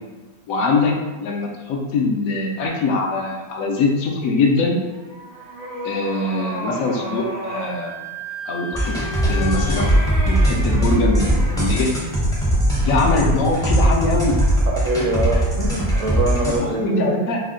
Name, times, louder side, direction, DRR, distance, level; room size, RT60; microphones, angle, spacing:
voice 1, 0.5-4.8 5.8-8.0 8.4-9.0 9.3-9.9 10.3-11.9 12.8-14.3 16.5-17.4, left 3 dB, 75° left, 0 dB, 1.0 m, -22 dB
sound 1, 4.8-7.8 8.7-11.9, equal, 45° right, 0.5 m, -32 dB
Wind instrument woodwind instrument, 7.5-14.9, equal, 90° right, 1.2 m, -39 dB
sound 2, 8.7-16.6, right 1 dB, 5° left, 0.3 m, -20 dB
voice 2, 14.7-17.1, right 1 dB, 70° right, -1 dB, 0.8 m, -23 dB
3.2 x 2.1 x 3.6 m, 1.2 s
omnidirectional pair, 1.5 m